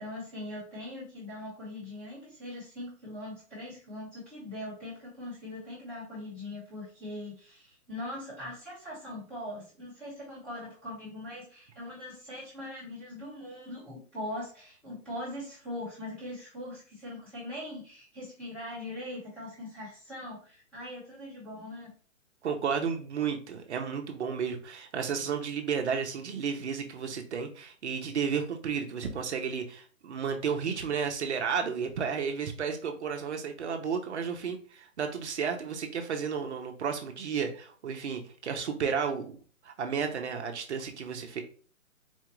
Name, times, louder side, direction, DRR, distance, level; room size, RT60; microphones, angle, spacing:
voice 1, 0.0-21.9, left 1 dB, 5° left, -10 dB, 1.1 m, -41 dB
voice 2, 22.4-39.4 39.6-41.4, right 6 dB, 55° right, 5 dB, 0.8 m, -32 dB
4.2 x 2.4 x 3.0 m, 0.40 s
hypercardioid pair, 165°, 42 cm